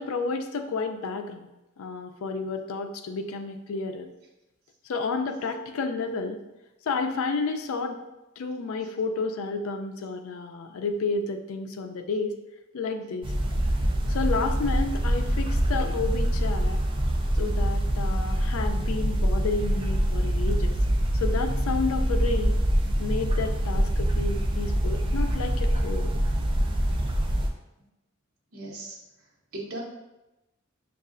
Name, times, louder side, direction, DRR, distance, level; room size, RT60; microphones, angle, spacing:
voice 1, 0.0-1.5 1.8-4.1 4.8-6.4 6.9-8.0 8.4-12.4 12.7-13.3 14.0-16.8 17.3-20.8 21.1-22.5 23.0-26.1, left 4 dB, 90° left, 5 dB, 0.4 m, -31 dB
sound 1, 13.2-27.5, equal, 25° right, 0.3 m, -25 dB
voice 2, 28.5-29.8, right 2 dB, 90° right, -3 dB, 1.0 m, -39 dB
6.3 x 2.3 x 2.4 m, 0.98 s
head